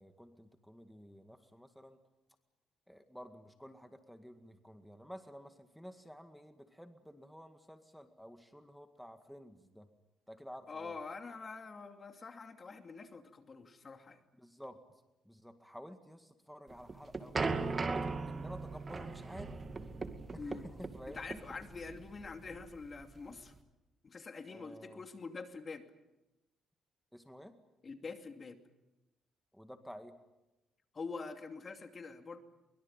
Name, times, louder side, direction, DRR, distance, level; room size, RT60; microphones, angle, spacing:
voice 1, 0.0-2.0 2.9-9.9 10.3-11.0 14.4-14.8 15.2-17.9 18.3-19.6 20.3-21.2 24.5-25.0 27.1-27.5 29.5-30.1, equal, ahead, 7 dB, 2.0 m, -52 dB
voice 2, 10.7-14.2 20.4-20.7 21.1-23.5 24.0-25.9 27.8-28.6 30.9-32.4, left 4 dB, 40° left, 7 dB, 2.6 m, -45 dB
sound 1, 16.7-23.6, right 4 dB, 35° right, 2.3 m, -38 dB
23.5 x 22.0 x 9.0 m, 0.97 s
cardioid pair, 90°, 0 cm